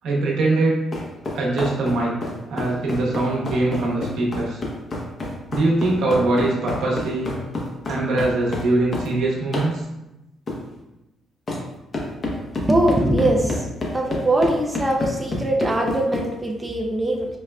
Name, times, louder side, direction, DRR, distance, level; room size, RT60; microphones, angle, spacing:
voice 1, 0.0-0.8 1.3-2.1 2.5-4.6 5.5-7.3 7.9-9.8, right 2 dB, 80° right, -3 dB, 0.8 m, -22 dB
sound 1, 0.9-9.1 9.5-9.7 10.5-10.6 11.5-11.6 11.9-16.3, left 2 dB, 40° left, 0.8 m, -28 dB
voice 2, 12.7-13.6 13.9-17.3, right 1 dB, 15° right, 0 dB, 0.4 m, -21 dB
4.7 x 2.1 x 2.3 m, 0.93 s
cardioid pair, 90°, 0 cm